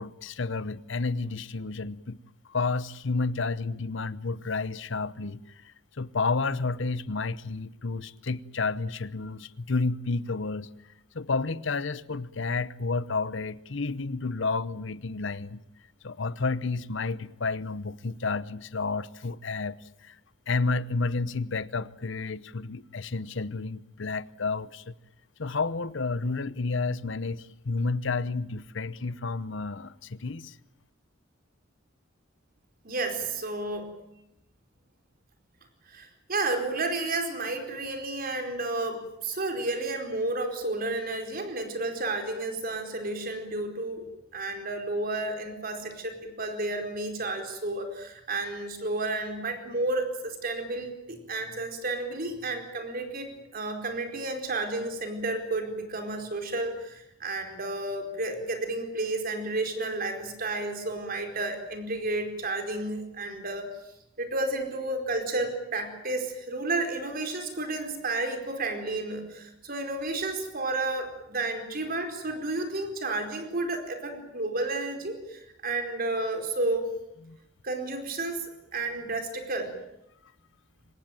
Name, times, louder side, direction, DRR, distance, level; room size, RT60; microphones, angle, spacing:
voice 1, 0.0-2.2 2.5-10.7 11.1-15.6 16.0-20.2 20.5-24.9 25.4-30.6 77.3-77.4, left 3 dB, 65° left, 0.9 m, -31 dB
voice 2, 32.8-34.0 35.9-44.1 44.3-63.7 64.2-76.9 77.6-79.7, right 2 dB, 45° right, 4.5 m, -31 dB
24.5 x 19.5 x 9.1 m
head